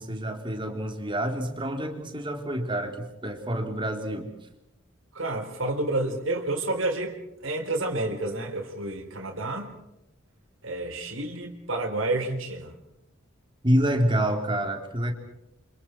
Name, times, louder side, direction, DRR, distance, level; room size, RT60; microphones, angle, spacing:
voice 1, 0.0-4.3 13.6-15.1, equal, 25° right, 4 dB, 3.4 m, -27 dB
voice 2, 5.1-7.2 7.4-9.7 10.6-12.7, right 2 dB, 85° right, 1 dB, 4.0 m, -29 dB
29.0 x 27.0 x 4.6 m, 0.86 s
head